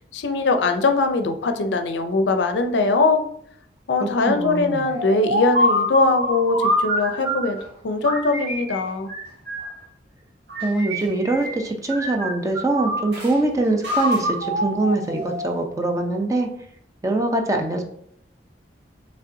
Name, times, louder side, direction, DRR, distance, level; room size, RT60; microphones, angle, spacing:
voice 1, 0.1-3.3 3.9-7.6 7.8-9.1, left 3 dB, 75° left, 7 dB, 0.5 m, -21 dB
voice 2, 4.0-4.8 10.6-16.5 17.0-17.8, right 2 dB, 20° right, 3 dB, 0.5 m, -23 dB
sound 1, 4.8-7.6 8.0-9.8 10.5-11.6 11.9-13.3 13.8-15.6, equal, 75° right, 1.5 m, -25 dB
5.4 x 3.3 x 2.6 m, 0.68 s
head